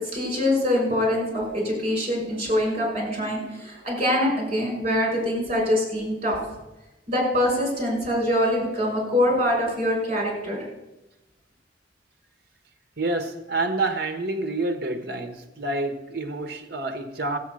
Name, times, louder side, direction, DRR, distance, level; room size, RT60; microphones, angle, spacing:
voice 1, 0.0-6.4 7.1-10.6, left 1 dB, 30° right, 5.3 m, -24 dB
voice 2, 13.0-17.4, right 2 dB, 55° right, 1.3 m, -28 dB
15.0 x 7.9 x 6.4 m
head